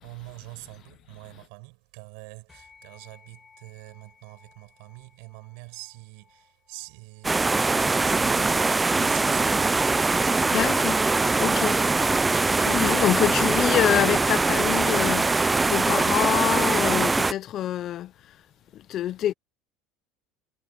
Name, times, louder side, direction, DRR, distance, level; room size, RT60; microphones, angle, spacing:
voice 1, 0.0-7.4 8.0-9.8, right 35 dB, 80° right, 6.1 m, -44 dB
sound 1, 2.5-12.2, left 6 dB, 25° left, 6.9 m, -60 dB
sound 2, 7.2-17.3, right 3 dB, 15° right, 0.4 m, -22 dB
voice 2, 10.5-18.1 18.7-19.3, left 12 dB, 45° left, 0.7 m, -27 dB
supercardioid pair, 125°, 0 cm